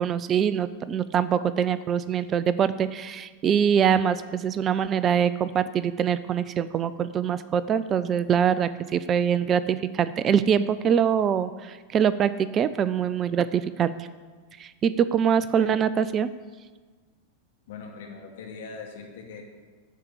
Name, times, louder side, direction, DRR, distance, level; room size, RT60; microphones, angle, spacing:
voice 1, 0.0-14.1 14.6-16.3, right 8 dB, 30° right, 15 dB, 0.4 m, -24 dB
voice 2, 17.7-19.4, left 5 dB, 60° left, 1 dB, 2.3 m, -41 dB
12.0 x 5.0 x 8.3 m, 1.4 s
figure-of-eight pair, 90°, 0 cm